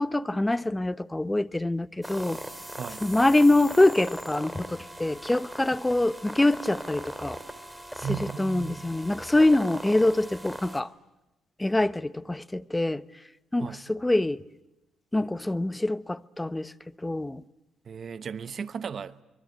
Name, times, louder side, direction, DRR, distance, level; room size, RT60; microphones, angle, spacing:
voice 1, 0.0-2.4 3.0-7.4 8.1-10.9 11.6-13.0 13.5-14.4 15.1-16.7 17.0-17.4, left 2 dB, 10° left, 0.9 m, -25 dB
sound 1, 2.0-10.8, right 1 dB, 5° right, 3.0 m, -39 dB
voice 2, 2.7-3.0 8.0-8.9 13.6-13.8 17.8-19.2, right 7 dB, 50° right, 1.1 m, -35 dB
25.0 x 23.5 x 9.6 m
cardioid pair, 90°, 0 cm